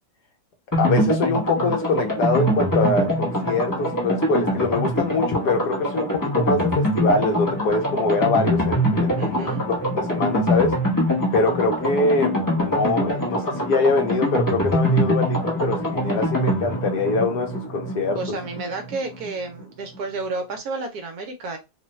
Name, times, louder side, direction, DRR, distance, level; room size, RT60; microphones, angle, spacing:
sound 1, 0.7-19.3 19.6-19.7 20.0-20.1, equal, 15° left, 0.6 m, -24 dB
voice 1, 0.8-9.5 10.1-10.8 11.3-18.2, left 3 dB, 70° left, 1.2 m, -23 dB
voice 2, 9.2-9.6 18.1-21.6, right 3 dB, 65° right, 1.1 m, -31 dB
3.2 x 2.2 x 3.0 m
omnidirectional pair, 1.9 m